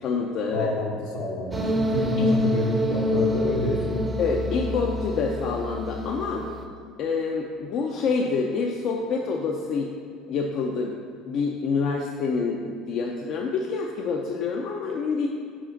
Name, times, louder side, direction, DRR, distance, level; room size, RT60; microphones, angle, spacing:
voice 1, 0.0-0.7 2.2-2.3 4.2-6.4 7.0-9.9 10.3-10.9 11.3-15.3, left 4 dB, 60° left, 0 dB, 0.5 m, -27 dB
voice 2, 0.5-4.0, left 2 dB, 80° left, -2 dB, 1.2 m, -28 dB
sound 1, 1.5-6.7, left 1 dB, 20° right, 0.6 m, -26 dB
5.0 x 4.2 x 5.1 m, 2.1 s
supercardioid pair, 95°, 0 cm